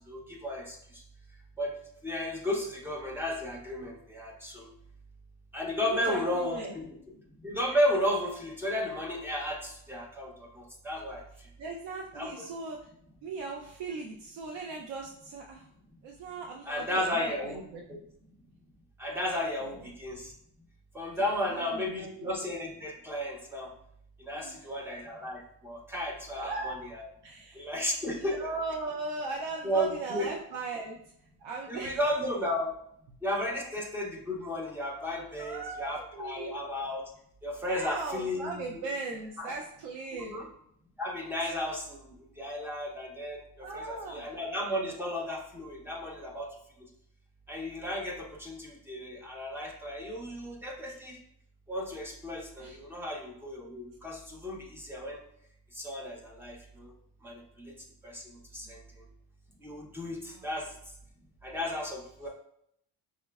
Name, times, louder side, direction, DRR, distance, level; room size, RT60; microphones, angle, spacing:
voice 1, 0.1-1.0 1.6-1.8 2.0-4.7 5.5-7.0 7.4-11.2 12.1-12.5 16.7-17.6 17.9-18.0 19.0-20.3 20.9-23.7 24.2-27.1 27.5-28.5 29.6-30.3 31.7-32.7 33.2-37.0 37.4-38.9 39.4-39.5 40.1-40.5 41.0-46.5 46.8-46.9 47.5-51.2 51.7-55.2 55.7-56.9 57.2-57.7 58.0-59.0 59.6-60.7 61.4-62.3, left 1 dB, 5° right, -1 dB, 0.5 m, -34 dB
voice 2, 5.8-6.7 11.6-12.8 13.2-15.7 16.0-17.8 19.8-19.9 21.2-22.3 24.3-24.7 26.4-26.8 27.2-27.7 28.1-31.0 31.4-32.0 35.4-36.6 37.6-40.4 43.6-44.3 52.6-52.8 60.2-60.4, right 3 dB, 80° right, 0 dB, 0.6 m, -38 dB
5.6 x 2.0 x 2.3 m, 0.71 s
cardioid pair, 130°, 43 cm